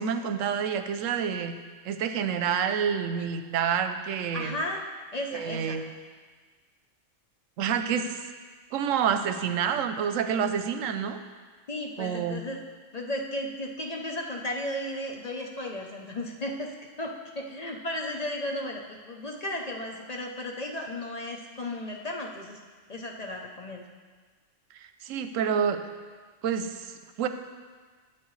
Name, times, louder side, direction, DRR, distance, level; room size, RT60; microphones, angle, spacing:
voice 1, 0.0-1.5 1.8-4.6 5.3-5.8 7.6-8.2 8.7-11.2 12.0-12.4 25.0-25.8 26.4-26.9 27.2-27.3, right 7 dB, 80° right, 8 dB, 1.0 m, -28 dB
voice 2, 4.3-4.8 5.1-5.8 11.7-12.6 12.9-16.7 17.0-22.6 22.9-23.9, left 1 dB, 40° left, 1 dB, 0.6 m, -34 dB
12.0 x 7.6 x 3.1 m, 1.5 s
omnidirectional pair, 1.3 m